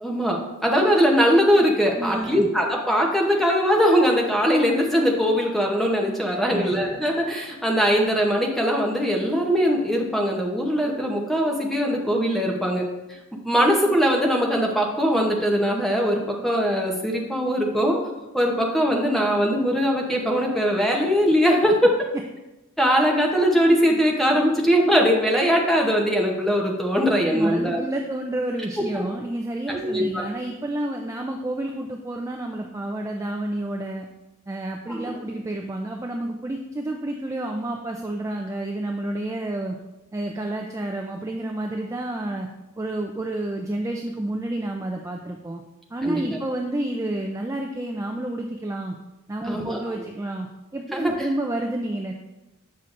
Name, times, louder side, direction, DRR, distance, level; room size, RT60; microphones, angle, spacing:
voice 1, 0.0-12.9 13.4-18.0 18.3-21.9 22.8-27.8 28.9-29.0 29.7-30.3 34.9-35.1 46.0-46.4 49.4-49.8 50.9-51.3, equal, ahead, 0 dB, 0.8 m, -21 dB
voice 2, 2.0-2.5 6.3-6.7 27.3-34.1 34.5-39.8 40.1-42.5 42.8-45.6 45.9-49.0 49.3-50.5 50.7-52.1, right 1 dB, 15° right, 2 dB, 0.3 m, -29 dB
7.4 x 5.6 x 2.5 m, 1.0 s
head